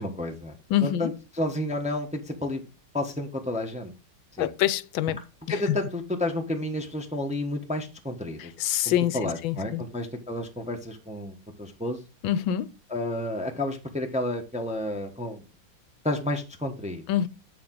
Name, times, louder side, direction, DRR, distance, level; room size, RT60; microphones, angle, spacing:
voice 1, 0.0-0.6 0.8-2.6 2.9-3.9 4.4-4.5 5.5-8.5 8.8-12.0 12.9-15.4 16.0-17.0, left 1 dB, 5° right, 0.8 m, -31 dB
voice 2, 0.7-1.1 4.4-5.2 8.6-9.2 9.4-9.8 12.2-12.7 17.1-17.3, left 11 dB, 85° left, 1.4 m, -25 dB
8.1 x 7.0 x 3.9 m
omnidirectional pair, 2.1 m